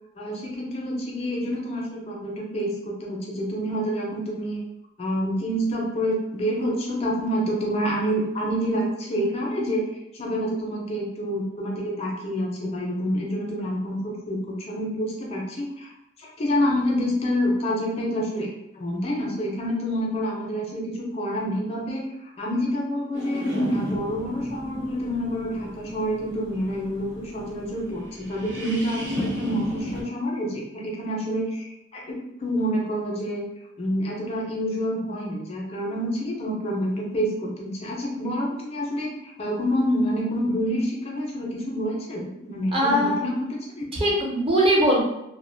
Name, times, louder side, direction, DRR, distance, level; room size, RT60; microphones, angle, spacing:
voice 1, 0.2-4.6 5.0-9.9 10.1-15.9 16.2-18.5 18.8-22.1 22.4-32.2 32.4-33.4 33.8-43.9, equal, 35° left, -2 dB, 0.4 m, -27 dB
sound 1, 23.1-30.0, equal, 70° right, 0.8 m, -34 dB
voice 2, 42.7-43.3 43.9-45.0, equal, 30° right, -2 dB, 0.5 m, -21 dB
2.3 x 2.1 x 2.6 m, 0.83 s
head